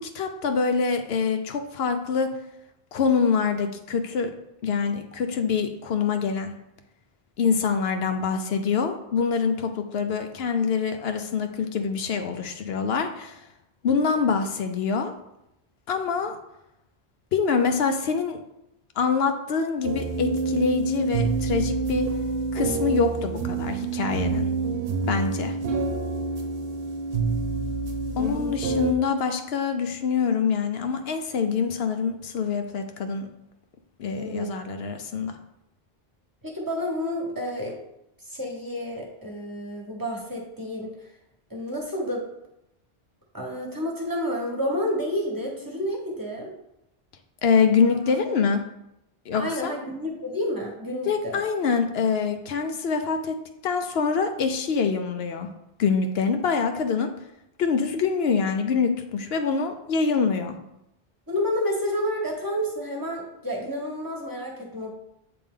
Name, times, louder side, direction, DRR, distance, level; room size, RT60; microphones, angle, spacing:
voice 1, 0.0-2.3 2.9-4.3 4.6-6.5 7.4-13.4 13.8-15.1 15.9-16.4 17.3-18.4 19.0-22.1 22.5-24.5 25.1-25.5 28.2-33.3 34.0-35.4 47.4-48.6 49.3-49.7 51.1-53.4 53.6-55.5 55.8-57.1 57.6-60.6, left 5 dB, 75° left, 6 dB, 0.8 m, -25 dB
sound 1, 19.8-28.9, right 4 dB, 65° right, 0.9 m, -27 dB
voice 2, 34.1-34.5 36.4-37.8 38.2-41.1 41.5-42.2 43.3-46.5 47.9-48.1 49.3-51.4 61.3-64.9, equal, 20° right, -2 dB, 1.1 m, -30 dB
7.8 x 3.4 x 3.6 m, 0.85 s
omnidirectional pair, 1.0 m